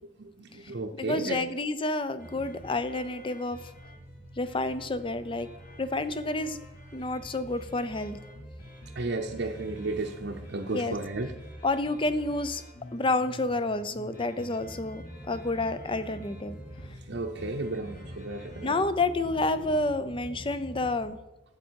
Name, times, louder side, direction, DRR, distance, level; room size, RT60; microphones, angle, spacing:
voice 1, 0.2-1.4 8.9-11.3 17.1-18.8, right 2 dB, 55° right, -1 dB, 0.7 m, -33 dB
voice 2, 1.0-3.7 4.4-5.5 5.8-6.6 6.9-8.2 10.7-11.0 11.6-12.6 12.9-16.6 18.6-21.2, left 2 dB, 25° left, 12 dB, 0.6 m, -29 dB
sound 1, 2.2-21.1, equal, 45° left, 2.5 m, -46 dB
12.5 x 8.2 x 4.6 m, 1.0 s
head